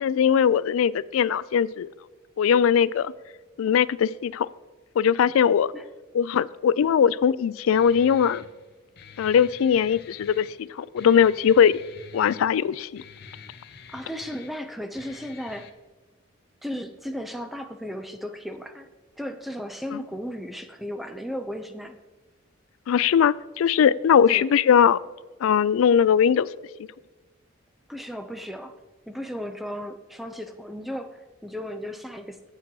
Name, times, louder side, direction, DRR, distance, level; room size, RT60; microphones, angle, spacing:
voice 1, 0.0-1.9 2.4-3.1 3.6-4.5 5.0-5.7 6.1-8.4 9.2-10.5 10.8-11.8 12.1-13.0 19.9-20.0 22.9-25.0 25.4-26.5, left 8 dB, 85° left, 19 dB, 0.3 m, -20 dB
Guitar, 7.7-15.7, left 5 dB, 50° left, 0.7 m, -47 dB
voice 2, 13.9-15.7 16.6-18.9 19.2-22.0 24.3-24.5 27.9-28.7 29.1-32.5, equal, ahead, 8 dB, 0.5 m, -35 dB
8.2 x 7.3 x 4.7 m, 1.2 s
head